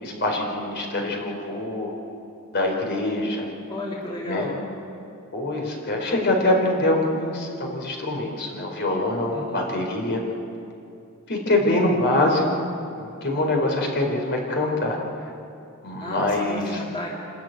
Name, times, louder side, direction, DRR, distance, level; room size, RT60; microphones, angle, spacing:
voice 1, 0.0-1.9 2.5-3.5 4.2-4.5 5.3-10.2 11.3-12.7 13.0-15.0 15.8-16.8, left 1 dB, 55° left, 1 dB, 4.2 m, -24 dB
voice 2, 3.7-4.6 9.3-9.8 16.0-17.1, left 1 dB, 25° left, -4 dB, 2.7 m, -34 dB
27.5 x 13.0 x 9.3 m, 2.6 s
head